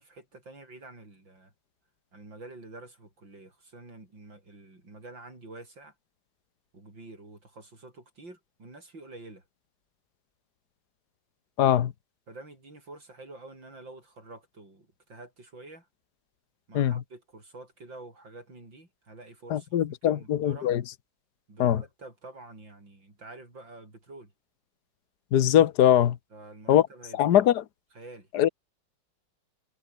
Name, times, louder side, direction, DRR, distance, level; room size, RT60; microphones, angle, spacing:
voice 1, 0.0-1.5 2.1-5.9 6.7-9.4 11.7-11.8 12.3-15.9 16.7-20.7 21.5-24.3 26.3-27.6 27.9-28.3, right 2 dB, 85° right, 8.3 m, -48 dB
voice 2, 11.6-11.9 16.8-17.0 19.5-20.8 21.6-21.8 25.3-26.2 26.7-26.8 27.2-27.6 28.3-28.5, left 11 dB, 65° left, 1.6 m, -21 dB
omnidirectional pair, 2.0 m